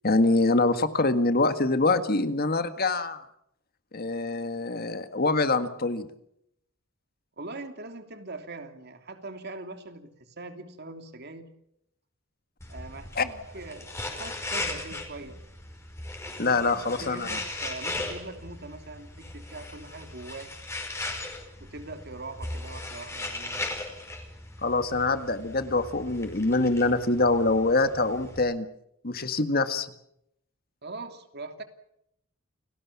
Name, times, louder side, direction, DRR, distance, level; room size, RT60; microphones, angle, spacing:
voice 1, 0.0-3.2 3.9-6.1 13.2-13.3 16.4-17.4 24.6-28.7 29.0-29.9, left 3 dB, 45° left, 10 dB, 1.7 m, -25 dB
voice 2, 7.4-11.5 12.7-15.4 16.4-20.5 21.6-23.6 30.8-31.6, right 2 dB, 50° right, 7 dB, 2.9 m, -42 dB
sound 1, 12.6-28.4, left 2 dB, 15° left, 5.2 m, -38 dB
29.5 x 18.5 x 7.2 m, 0.76 s
head